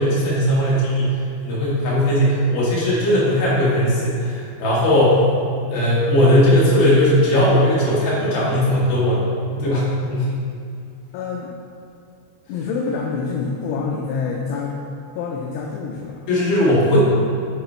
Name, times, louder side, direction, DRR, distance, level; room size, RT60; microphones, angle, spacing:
voice 1, 0.0-5.2 5.7-10.3 16.3-17.0, equal, 65° left, -8 dB, 3.0 m, -18 dB
voice 2, 11.1-11.5 12.5-14.7 15.2-16.2, left 5 dB, 85° left, -1 dB, 2.6 m, -26 dB
10.0 x 3.8 x 3.2 m, 2.3 s
omnidirectional pair, 5.2 m